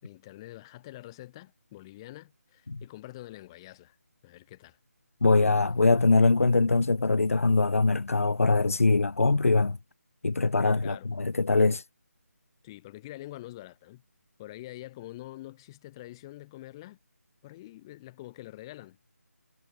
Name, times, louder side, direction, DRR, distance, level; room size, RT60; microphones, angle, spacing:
voice 1, 0.0-4.0 4.2-4.8 10.6-11.1 12.6-14.0 14.4-17.0 17.4-19.0, left 16 dB, 15° left, 4.7 m, -45 dB
voice 2, 5.2-9.8 10.2-11.8, left 3 dB, 60° left, 1.2 m, -23 dB
figure-of-eight pair, 155°, 9 cm